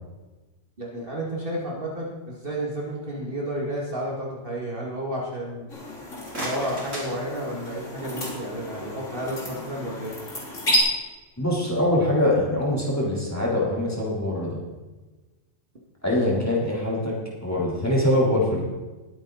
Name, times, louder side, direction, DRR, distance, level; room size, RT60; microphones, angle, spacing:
voice 1, 0.8-5.7 6.4-10.1, right 1 dB, 45° right, -3 dB, 2.4 m, -31 dB
sound 1, 5.7-10.8, equal, 80° left, 3.7 m, -32 dB
sound 2, 6.1-8.0, right 1 dB, 90° right, 4.4 m, -36 dB
voice 2, 11.4-14.6 16.0-17.1 17.4-18.6, left 1 dB, 10° left, -5 dB, 3.6 m, -23 dB
20.5 x 8.7 x 4.1 m, 1.2 s
omnidirectional pair, 1.3 m